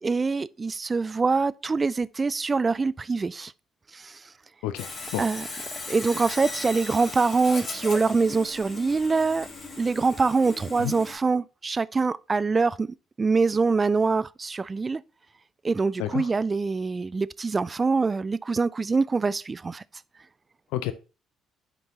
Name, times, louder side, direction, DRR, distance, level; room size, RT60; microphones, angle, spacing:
voice 1, 0.0-3.5 3.9-4.2 5.2-5.5 5.9-9.5 9.8-15.0 15.6-19.8, right 4 dB, 30° right, 0.3 m, -24 dB
voice 2, 4.6-5.2 10.8-10.9 16.0-16.3 20.7-20.9, left 13 dB, 75° left, 0.4 m, -30 dB
Sawing, 4.8-11.2, left 3 dB, 45° left, 2.4 m, -38 dB
10.5 x 4.5 x 2.8 m
hypercardioid pair, 50°, 0 cm